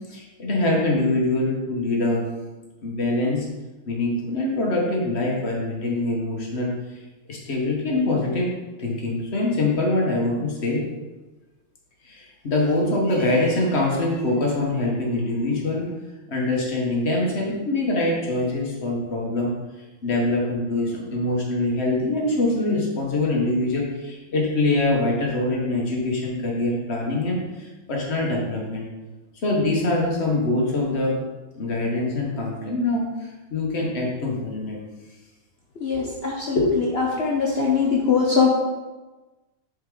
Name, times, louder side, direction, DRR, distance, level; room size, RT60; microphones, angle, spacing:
voice 1, 0.1-2.2 2.8-3.5 3.9-6.7 7.3-8.5 8.8-10.9 12.0-15.9 16.3-19.6 20.0-28.9 29.4-31.2 31.6-34.8 35.9-36.1 36.5-36.7, left 2 dB, 40° left, -2 dB, 1.2 m, -24 dB
voice 2, 35.8-36.6 37.2-38.5, left 5 dB, 80° left, -2 dB, 0.5 m, -21 dB
6.5 x 4.5 x 3.8 m, 1.2 s
omnidirectional pair, 2.2 m